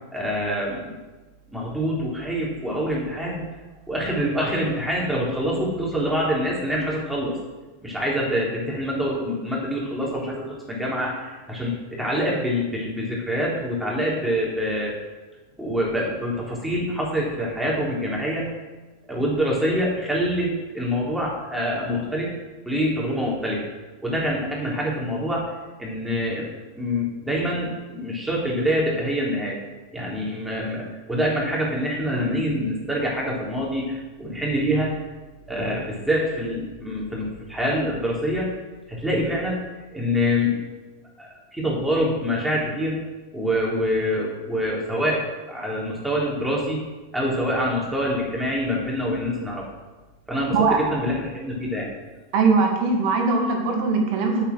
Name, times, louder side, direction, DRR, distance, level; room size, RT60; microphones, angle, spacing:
voice 1, 0.1-1.0 1.5-3.4 3.9-7.4 7.8-14.9 15.6-18.5 19.1-22.3 22.7-23.6 24.0-25.5 25.8-29.6 29.9-35.0 35.5-38.5 38.9-39.6 39.9-40.6 41.2-43.0 43.3-46.8 47.1-49.7 50.3-51.9, equal, 5° right, -5 dB, 3.9 m, -25 dB
voice 2, 52.3-54.4, right 4 dB, 45° right, 2 dB, 2.5 m, -20 dB
8.8 x 8.7 x 6.3 m, 1.2 s
figure-of-eight pair, 90°, 0 cm